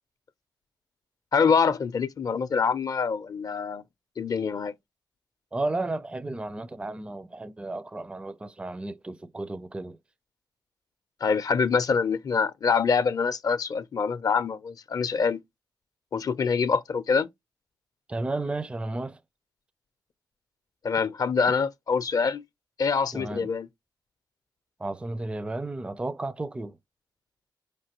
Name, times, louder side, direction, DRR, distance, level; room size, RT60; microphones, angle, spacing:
voice 1, 1.3-3.8 4.2-4.7 11.2-15.4 16.1-17.3 20.8-22.4 22.8-23.7, left 5 dB, 50° left, 0.5 m, -25 dB
voice 2, 5.5-10.0 18.1-19.2 23.1-23.5 24.8-26.8, right 2 dB, 15° right, 0.4 m, -33 dB
4.5 x 3.3 x 2.9 m
cardioid pair, 75°, 8 cm